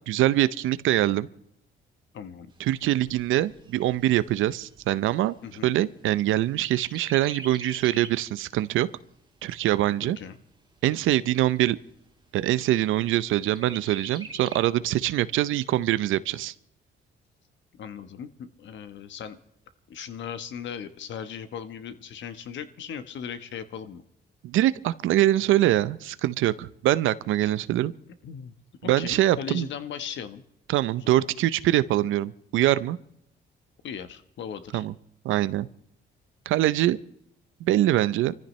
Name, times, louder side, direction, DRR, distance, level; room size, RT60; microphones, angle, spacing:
voice 1, 0.1-1.3 2.6-5.3 5.6-8.9 9.4-10.2 10.8-11.8 12.3-16.5 24.4-27.9 28.8-29.7 30.7-33.0 34.7-34.9 35.2-35.7 36.5-37.0 37.6-38.3, right 14 dB, 85° right, 16 dB, 0.6 m, -24 dB
voice 2, 2.1-2.5 5.4-5.7 10.0-10.4 17.8-19.4 19.9-24.0 27.4-27.5 28.2-28.5 28.8-30.4 31.0-31.2 33.8-34.8, left 8 dB, 65° left, 10 dB, 1.2 m, -38 dB
Chirp tweet, 2.5-6.3 6.6-8.3 8.8-8.9 9.2-10.2 10.8-10.9 11.2-11.3 11.8-12.3 13.6-14.6, right 3 dB, 20° right, 2.7 m, -45 dB
25.5 x 14.5 x 3.2 m, 0.75 s
cardioid pair, 90°, 20 cm